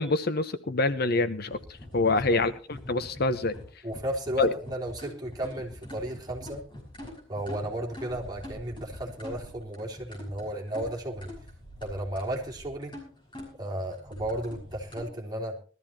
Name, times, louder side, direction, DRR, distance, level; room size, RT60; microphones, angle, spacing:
voice 1, 0.0-1.6 1.9-2.5 2.9-3.6 4.4-4.5, left 2 dB, 50° left, 12 dB, 0.9 m, -25 dB
sound 1, 1.4-15.0, left 1 dB, 25° left, 6.0 m, -44 dB
voice 2, 2.0-2.4 3.8-6.6 7.3-11.3 11.8-12.9 13.6-15.6, right 1 dB, 20° right, -2 dB, 3.5 m, -34 dB
21.0 x 13.5 x 2.9 m, 0.40 s
head